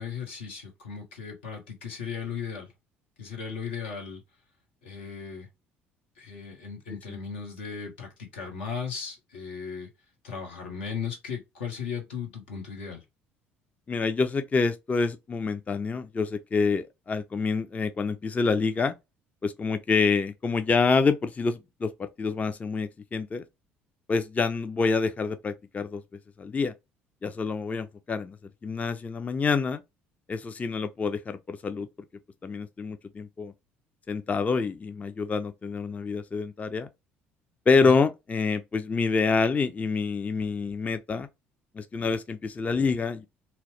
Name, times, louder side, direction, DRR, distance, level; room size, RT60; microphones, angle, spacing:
voice 1, 0.0-2.7 3.2-4.2 4.8-5.5 6.2-9.9 10.2-13.0 37.8-37.9, left 6 dB, 80° left, 0.9 m, -36 dB
voice 2, 13.9-18.9 19.4-23.4 24.1-26.0 26.4-26.7 27.2-28.4 28.6-29.8 30.3-31.9 32.4-33.5 34.1-36.9 37.7-41.3 41.8-43.3, left 4 dB, 25° left, 0.4 m, -27 dB
2.8 x 2.0 x 3.0 m
hypercardioid pair, 60°, 6 cm